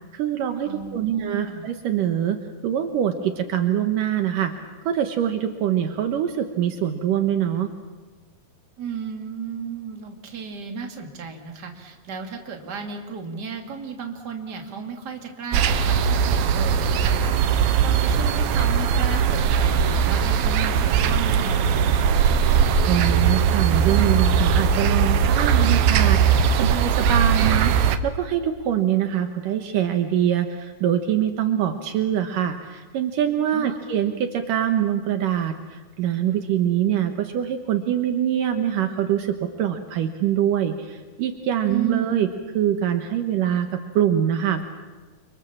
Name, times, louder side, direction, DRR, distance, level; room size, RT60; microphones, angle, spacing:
voice 1, 0.1-2.4 2.6-4.5 4.9-7.7 22.9-42.3 42.5-44.7, right 10 dB, 70° right, 6 dB, 2.7 m, -24 dB
voice 2, 0.6-1.7 8.8-22.3 33.5-33.8 41.7-42.3, right 5 dB, 30° right, 3 dB, 2.9 m, -34 dB
sound 1, 15.5-28.0, right 7 dB, 90° right, 2.9 m, -20 dB
29.5 x 25.0 x 7.4 m, 1.2 s
omnidirectional pair, 4.1 m